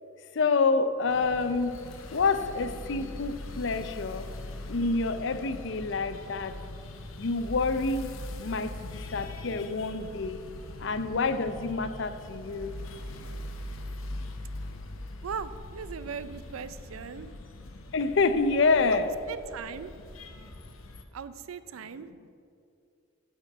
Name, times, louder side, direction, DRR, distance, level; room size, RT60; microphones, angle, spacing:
voice 1, 0.4-1.8 2.1-4.2 4.7-6.5 7.2-8.1 8.4-10.4 10.8-12.7 17.9-19.1, left 4 dB, 60° left, 11 dB, 0.5 m, -27 dB
sound 1, 1.1-21.0, left 1 dB, 90° left, 0.8 m, -42 dB
voice 2, 15.2-17.3 18.9-19.9 21.1-22.1, right 6 dB, 90° right, 13 dB, 0.4 m, -39 dB
10.5 x 4.4 x 7.8 m, 2.5 s
head